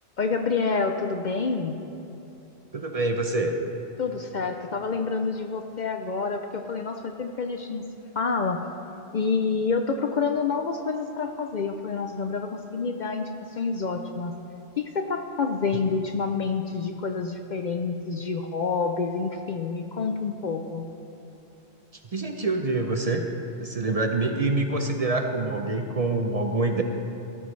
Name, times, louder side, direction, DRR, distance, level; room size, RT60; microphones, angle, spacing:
voice 1, 0.2-1.8 4.0-7.8 8.2-8.6 9.1-14.3 14.8-20.9, left 4 dB, 55° left, 6 dB, 0.6 m, -28 dB
voice 2, 2.7-3.5 22.1-23.3 23.6-26.8, right 2 dB, 40° right, 4 dB, 0.7 m, -26 dB
15.5 x 13.5 x 3.2 m, 2.8 s
omnidirectional pair, 1.1 m